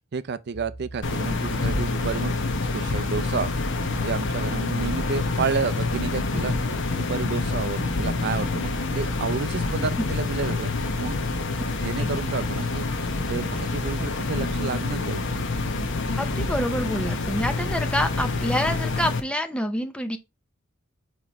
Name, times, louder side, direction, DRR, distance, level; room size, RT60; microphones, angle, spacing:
voice 1, 0.1-3.6 3.9-6.5 7.0-10.7 11.0-11.2 11.8-12.8 13.3-15.3, right 5 dB, 50° right, 0.4 m, -30 dB
sound 1, 0.5-18.7, right 1 dB, 85° left, 1.5 m, -41 dB
sound 2, 1.0-19.2, left 3 dB, 60° left, 0.9 m, -27 dB
voice 2, 16.2-20.2, equal, 5° left, 0.6 m, -27 dB
4.8 x 4.3 x 4.5 m
head